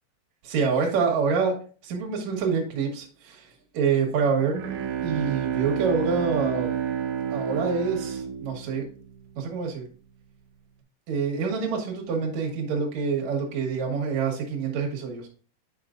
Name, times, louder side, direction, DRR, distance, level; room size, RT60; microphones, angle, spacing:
voice 1, 0.4-1.6 1.8-3.5 3.7-4.6 5.0-6.7 7.3-8.9 9.4-9.8 11.1-15.3, right 5 dB, 65° right, 0 dB, 1.8 m, -26 dB
Bowed string instrument, 4.5-9.6, right 9 dB, 85° right, 3.0 m, -30 dB
8.5 x 5.6 x 2.5 m, 0.40 s
omnidirectional pair, 5.2 m